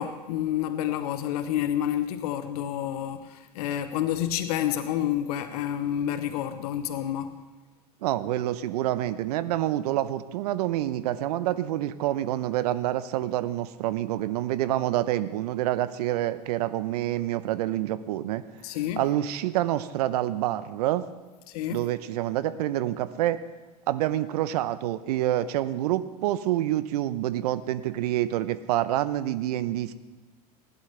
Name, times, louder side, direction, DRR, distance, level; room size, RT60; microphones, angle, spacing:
voice 1, 0.0-7.3 18.6-19.0 21.5-21.8, left 11 dB, 65° left, 10 dB, 1.1 m, -29 dB
voice 2, 8.0-18.4 19.0-21.1 21.7-23.4 23.9-29.9, right 13 dB, 70° right, 14 dB, 0.9 m, -27 dB
19.5 x 11.5 x 3.4 m, 1.2 s
hypercardioid pair, 90°, 21 cm